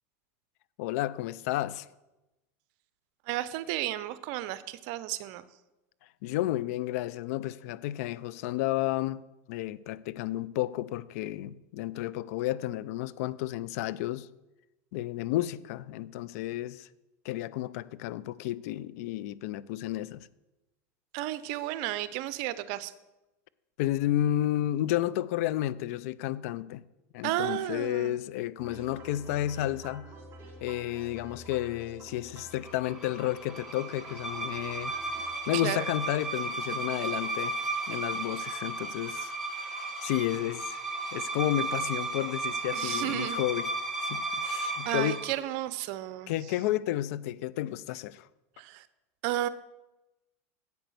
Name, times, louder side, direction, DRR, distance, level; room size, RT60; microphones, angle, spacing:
voice 1, 0.8-1.9 6.2-9.2 9.5-14.3 14.9-16.9 17.2-20.3 23.8-26.8 27.1-30.1 30.6-34.9 35.5-37.6 37.9-40.8 41.1-43.7 44.0-45.2 46.3-48.3, left 14 dB, 65° left, 0.4 m, -32 dB
voice 2, 3.3-5.4 21.1-22.9 27.2-28.1 35.5-35.9 42.7-43.4 44.8-46.3 48.6-48.9 49.2-49.5, right 14 dB, 60° right, 0.6 m, -33 dB
sound 1, 28.6-35.4, right 2 dB, 30° right, 3.7 m, -49 dB
sound 2, 32.6-45.3, right 3 dB, ahead, 2.1 m, -34 dB
8.3 x 6.0 x 6.6 m
hypercardioid pair, 105°, 9 cm